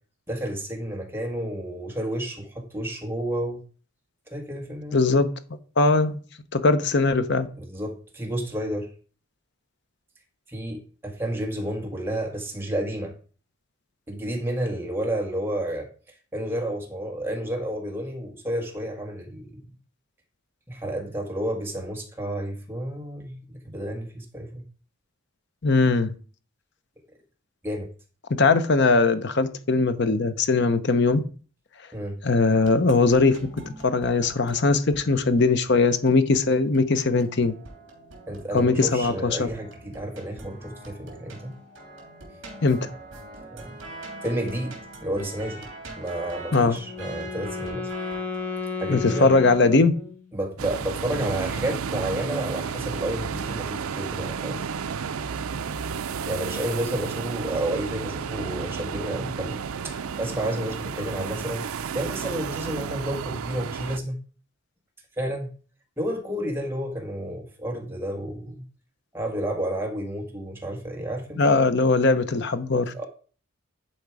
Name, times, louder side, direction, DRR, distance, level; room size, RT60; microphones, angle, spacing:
voice 1, 0.3-3.6 4.3-5.0 7.6-8.9 10.5-13.1 14.1-15.9 16.3-19.6 20.7-24.6 27.6-27.9 31.9-32.2 38.3-41.5 43.5-43.8 44.2-45.7 46.0-47.9 48.8-49.3 50.3-54.6 56.2-64.2 65.2-65.5 66.0-68.6 69.1-71.7 72.9-73.0, right 1 dB, 10° right, 1.6 m, -31 dB
voice 2, 4.9-5.3 5.8-6.2 6.5-7.5 25.6-26.1 28.3-31.2 32.2-33.5 33.8-37.5 38.5-39.5 42.6-42.9 46.5-46.8 48.9-50.0 71.4-73.0, left 3 dB, 50° left, 0.8 m, -20 dB
sound 1, 32.6-49.6, right 2 dB, 55° right, 3.1 m, -44 dB
Wind instrument woodwind instrument, 46.5-50.4, left 5 dB, 10° left, 1.5 m, -34 dB
sound 2, 50.6-64.0, right 6 dB, 75° right, 0.5 m, -32 dB
10.5 x 4.6 x 4.8 m
head